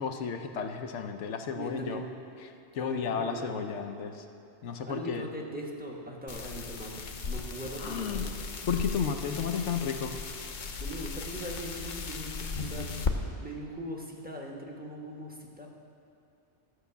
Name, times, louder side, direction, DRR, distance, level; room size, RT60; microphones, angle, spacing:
voice 1, 0.0-2.0 2.7-4.2 4.6-5.2 7.8-8.3 8.7-10.2, left 6 dB, 80° left, 6 dB, 1.0 m, -32 dB
voice 2, 1.6-2.1 2.8-3.8 4.8-8.5 10.8-13.1 13.4-15.7, right 1 dB, 10° right, -1 dB, 1.1 m, -40 dB
sound 1, 6.3-13.1, left 4 dB, 50° left, 0.8 m, -36 dB
13.5 x 5.8 x 7.0 m, 2.6 s
omnidirectional pair, 1.2 m